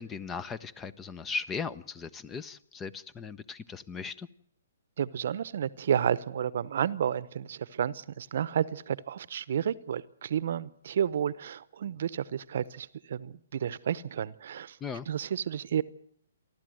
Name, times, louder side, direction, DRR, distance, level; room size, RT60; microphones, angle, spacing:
voice 1, 0.0-4.3 14.8-15.1, left 5 dB, 15° left, 18 dB, 0.7 m, -38 dB
voice 2, 5.0-14.8 15.1-15.8, right 9 dB, 60° right, 18 dB, 0.8 m, -31 dB
29.0 x 12.0 x 7.8 m, 0.67 s
hypercardioid pair, 140°, 0 cm